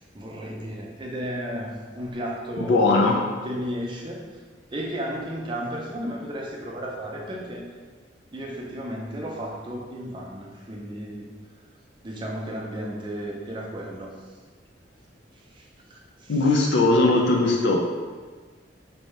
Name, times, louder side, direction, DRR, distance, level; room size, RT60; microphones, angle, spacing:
voice 1, 0.1-3.0 3.4-4.3 4.7-7.7 8.3-11.3 12.0-14.2 15.6-15.7 15.9-16.5, equal, 25° right, -2 dB, 0.6 m, -33 dB
voice 2, 2.6-3.1 16.3-17.8, left 2 dB, 65° left, -1 dB, 0.4 m, -19 dB
4.5 x 2.7 x 3.1 m, 1.5 s
head